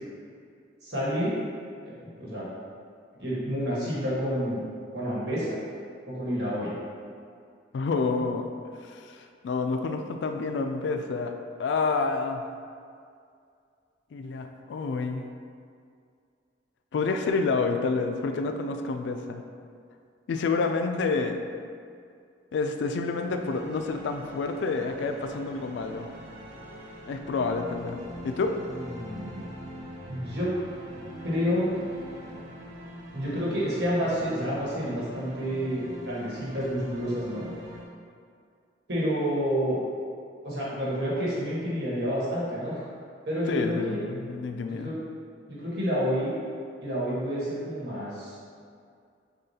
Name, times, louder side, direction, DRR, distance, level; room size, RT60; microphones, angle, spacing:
voice 1, 0.8-1.3 2.2-2.5 3.2-4.6 4.9-5.6 6.1-6.7 28.8-29.5 30.1-30.5 31.2-31.7 33.1-37.5 38.9-39.8 40.4-42.8 43.2-44.0 44.8-44.9 45.5-46.3 46.8-48.4, equal, 65° right, -8 dB, 1.3 m, -29 dB
voice 2, 7.7-8.5 8.8-11.3 11.6-12.4 14.1-15.3 16.9-19.4 20.3-21.4 22.5-26.1 27.1-28.0 28.2-28.5 43.5-44.9, left 4 dB, 75° left, 5 dB, 0.3 m, -28 dB
sound 1, 23.4-37.8, equal, 90° right, 0.6 m, -43 dB
6.4 x 2.3 x 2.8 m, 2.3 s
head